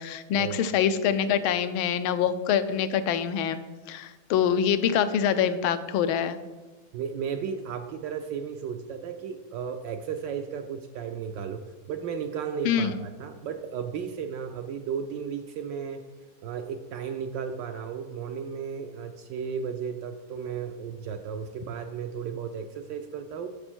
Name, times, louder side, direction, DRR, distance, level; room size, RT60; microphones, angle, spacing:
voice 1, 0.0-3.6 3.9-6.4 12.6-12.9, left 8 dB, 80° left, 12 dB, 1.4 m, -25 dB
voice 2, 6.9-16.0 16.4-23.5, right 7 dB, 75° right, 6 dB, 1.1 m, -34 dB
10.0 x 6.8 x 4.4 m, 1.3 s
omnidirectional pair, 2.3 m